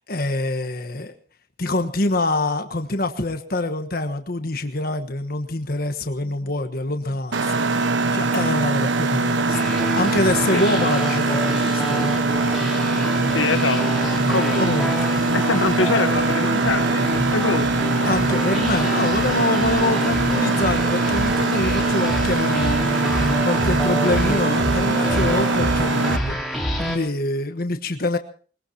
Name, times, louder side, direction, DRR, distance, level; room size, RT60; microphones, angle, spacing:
voice 1, 0.1-1.1 1.6-7.4 7.8-9.6 9.9-12.2 14.5-15.1 18.0-22.8 23.4-26.4 26.8-28.2, left 2 dB, 50° left, 7 dB, 1.3 m, -25 dB
Mechanisms, 7.3-26.2, right 3 dB, 85° right, 1.2 m, -22 dB
sound 1, 9.5-27.0, equal, ahead, 3.6 m, -27 dB
voice 2, 13.3-13.9 14.3-14.6 15.3-17.7, left 3 dB, 90° left, 8 dB, 1.4 m, -24 dB
21.5 x 21.5 x 2.9 m, 0.41 s
head